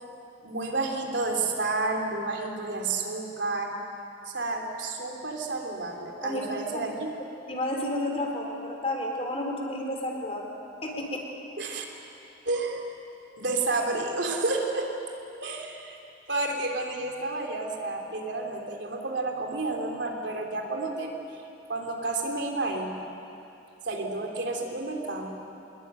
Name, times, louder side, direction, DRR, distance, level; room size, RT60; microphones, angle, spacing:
voice 1, 0.4-3.7 4.2-7.0 11.6-11.8 12.4-12.8 13.4-14.9 15.4-16.0 16.3-21.2 21.7-22.9 23.8-25.3, right 3 dB, 65° right, 2 dB, 3.4 m, -30 dB
voice 2, 6.2-6.8 7.5-10.5 10.8-11.2, left 1 dB, 30° left, 1 dB, 3.9 m, -31 dB
25.5 x 21.5 x 9.1 m, 2.8 s
head